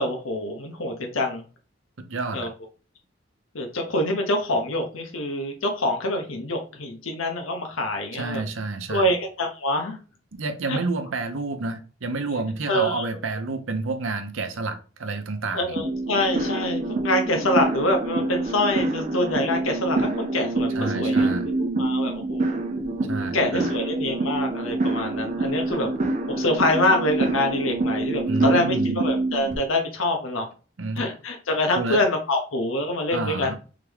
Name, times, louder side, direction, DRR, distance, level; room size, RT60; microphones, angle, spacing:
voice 1, 0.0-1.4 2.3-2.5 3.5-8.4 8.9-10.0 10.7-10.8 12.7-13.1 15.5-21.3 21.6-22.6 23.3-25.9 26.3-30.5 31.0-33.5, left 1 dB, 85° left, 0.9 m, -25 dB
voice 2, 2.0-2.5 8.1-9.1 10.3-15.8 20.7-21.5 23.1-23.7 28.3-29.0 30.8-31.0 31.7-32.0 33.1-33.5, right 3 dB, 80° right, 0.8 m, -29 dB
sound 1, 15.8-29.6, right 2 dB, 35° right, 0.7 m, -26 dB
3.7 x 3.5 x 3.4 m
head